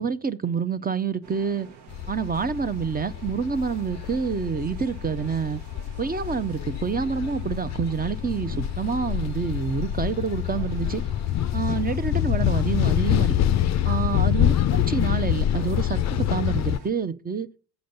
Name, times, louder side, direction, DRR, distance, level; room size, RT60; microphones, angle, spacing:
voice 1, 0.0-1.7 2.1-5.6 6.0-11.0 11.5-13.4 13.8-17.5, right 6 dB, 20° right, 0.6 m, -27 dB
sound 1, 1.2-16.9, right 5 dB, 65° right, 1.1 m, -49 dB
sound 2, 1.9-16.8, left 11 dB, 40° left, 0.5 m, -26 dB
8.0 x 5.1 x 6.7 m
supercardioid pair, 70°, 43 cm